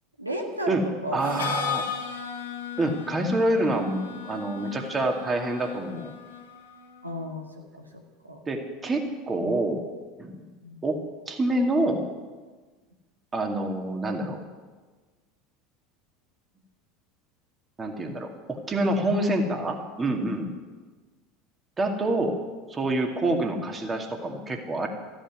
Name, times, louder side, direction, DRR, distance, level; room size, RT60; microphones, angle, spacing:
voice 1, 0.2-1.5 7.0-8.0 8.3-8.4 10.6-10.8 18.8-18.9, equal, 90° right, 1 dB, 1.5 m, -34 dB
voice 2, 1.1-1.8 2.8-6.1 8.5-9.9 10.2-10.4 10.8-12.0 13.3-14.4 17.8-20.5 21.8-22.4 22.7-24.9, right 1 dB, 20° right, 4 dB, 2.2 m, -27 dB
Harmonica, 1.2-6.9, left 7 dB, 75° left, 1.7 m, -36 dB
13.5 x 9.1 x 9.5 m, 1.4 s
figure-of-eight pair, 75°, 0 cm